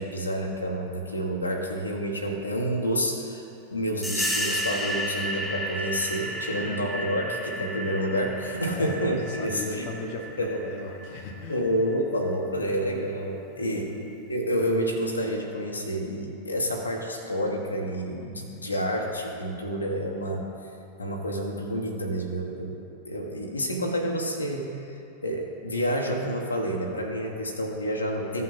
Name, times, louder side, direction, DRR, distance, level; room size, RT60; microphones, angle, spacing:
voice 1, 0.0-3.4 3.7-9.9 10.4-10.6 11.5-13.9 14.3-20.5 21.0-24.8 25.2-28.4, equal, 80° left, 0 dB, 1.0 m, -29 dB
sound 1, 4.0-12.3, equal, ahead, 1.0 m, -33 dB
voice 2, 6.5-7.3 8.7-11.6 13.5-14.1, left 2 dB, 45° left, 2 dB, 1.0 m, -38 dB
14.5 x 5.6 x 3.9 m, 2.7 s
figure-of-eight pair, 90°, 0 cm